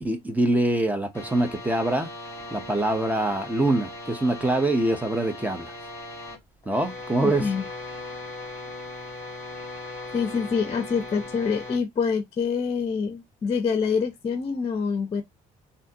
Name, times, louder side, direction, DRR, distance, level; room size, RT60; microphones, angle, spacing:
voice 1, 0.0-2.1 2.5-5.7 6.7-7.5, right 1 dB, 10° right, 0.7 m, -24 dB
sound 1, 1.1-6.4 6.6-11.8, left 2 dB, 15° left, 1.7 m, -39 dB
voice 2, 7.2-7.7 10.1-15.2, left 5 dB, 35° left, 0.7 m, -26 dB
3.5 x 2.5 x 2.8 m
cardioid pair, 110°, 17 cm